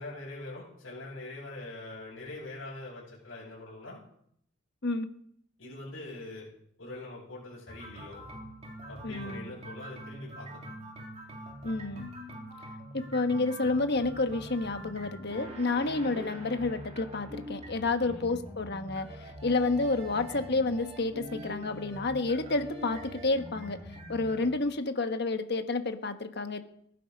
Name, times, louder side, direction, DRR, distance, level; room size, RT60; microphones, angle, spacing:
voice 1, 0.0-4.0 5.6-6.5 6.8-8.2 8.9-10.6 18.0-18.2, left 2 dB, 90° left, -9 dB, 7.3 m, -43 dB
sound 1, 7.7-24.6, equal, 35° right, 3.5 m, -44 dB
voice 2, 9.0-9.5 11.6-12.1 12.9-23.8 24.1-26.6, left 3 dB, 60° left, 8 dB, 1.3 m, -30 dB
18.0 x 11.5 x 5.3 m, 0.68 s
head